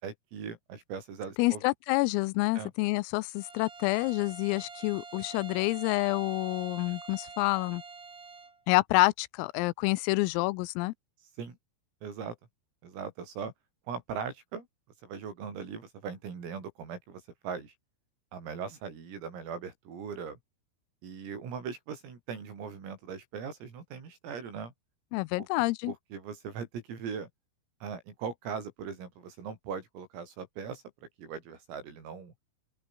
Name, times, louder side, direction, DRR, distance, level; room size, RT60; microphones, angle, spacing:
voice 1, 0.0-1.6 2.6-2.7 11.4-11.6 12.0-12.4 12.8-13.5 13.9-14.7 15.0-17.7 18.3-20.4 21.0-24.7 25.4-25.5 25.9-27.3 27.8-30.8 31.2-32.3, right 6 dB, 90° right, 8.8 m, -39 dB
voice 2, 1.4-7.8 8.7-10.9 25.1-25.9, left 23 dB, 90° left, 3.4 m, -28 dB
Bowed string instrument, 3.4-8.6, right 4 dB, 40° right, 7.0 m, -46 dB
open air
omnidirectional pair, 5.9 m